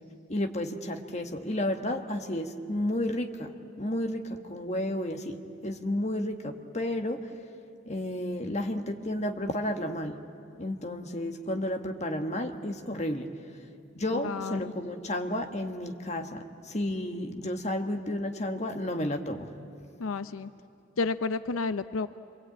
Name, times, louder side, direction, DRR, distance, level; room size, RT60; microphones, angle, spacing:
voice 1, 0.3-5.4 5.6-7.2 7.9-10.2 10.5-13.3 13.9-19.5, left 1 dB, 35° left, 4 dB, 1.4 m, -32 dB
voice 2, 14.1-14.7 20.0-20.5 21.0-22.1, left 4 dB, 85° left, 12 dB, 0.6 m, -31 dB
26.5 x 24.0 x 8.9 m, 2.5 s
head